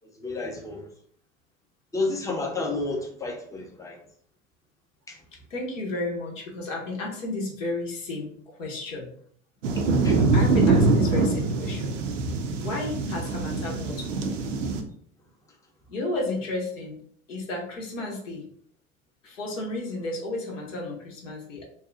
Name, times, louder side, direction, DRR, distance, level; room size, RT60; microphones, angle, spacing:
voice 1, 0.2-0.8 1.9-4.0 5.1-5.2 10.0-10.3, left 2 dB, 10° left, 2 dB, 0.5 m, -30 dB
voice 2, 5.5-9.1 10.3-12.0 12.6-14.3 15.9-17.0 17.3-18.5 19.2-21.6, left 2 dB, 80° left, -2 dB, 0.7 m, -32 dB
sound 1, 9.6-14.8, right 3 dB, 75° right, 0.5 m, -23 dB
2.7 x 2.2 x 2.4 m, 0.62 s
figure-of-eight pair, 70°, 38 cm